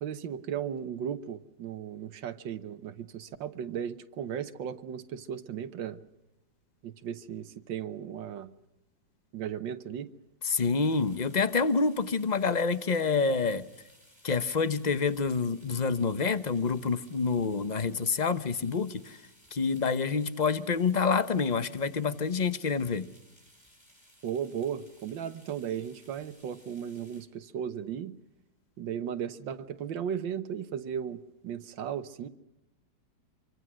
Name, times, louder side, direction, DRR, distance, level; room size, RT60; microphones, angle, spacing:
voice 1, 0.0-6.0 6.8-8.5 9.3-10.1 24.2-28.2 28.8-32.3, right 8 dB, 85° right, 1.7 m, -36 dB
voice 2, 10.4-13.7 14.2-19.2 19.5-23.1, left 5 dB, 30° left, 0.8 m, -27 dB
sound 1, 10.7-27.3, equal, 15° left, 6.6 m, -60 dB
26.0 x 24.5 x 6.3 m
omnidirectional pair, 2.0 m